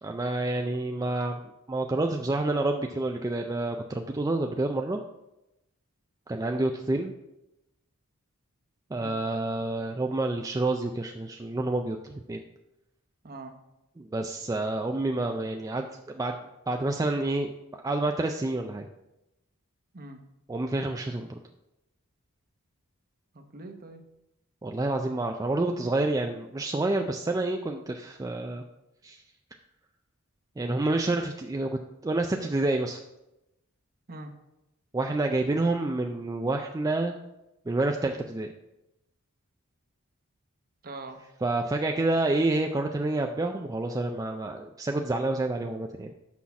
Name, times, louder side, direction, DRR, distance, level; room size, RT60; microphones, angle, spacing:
voice 1, 0.0-1.4 1.7-5.0 6.3-7.1 8.9-12.4 14.0-16.3 16.7-17.5 17.8-18.9 20.5-21.4 24.6-28.6 29.0-29.2 30.6-33.0 34.9-37.1 37.7-38.5 41.4-46.1, right 2 dB, 15° right, 3 dB, 0.3 m, -28 dB
voice 2, 13.2-13.6 19.9-20.2 23.3-24.0 34.1-34.3 40.8-41.2, right 2 dB, 45° right, 6 dB, 0.9 m, -42 dB
6.2 x 5.6 x 5.8 m, 0.93 s
head